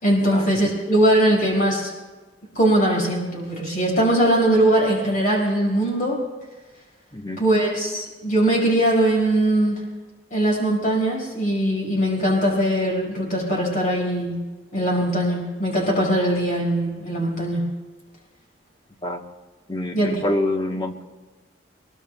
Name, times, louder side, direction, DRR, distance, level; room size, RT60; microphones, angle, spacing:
voice 1, 0.0-1.9 2.6-6.2 7.4-9.8 10.3-14.4 14.7-17.7 19.9-20.3, right 1 dB, 45° left, -3 dB, 5.2 m, -21 dB
voice 2, 7.1-7.4 19.0-19.2 19.7-21.0, left 1 dB, 25° left, 3 dB, 1.2 m, -26 dB
23.5 x 22.0 x 2.3 m, 1.3 s
head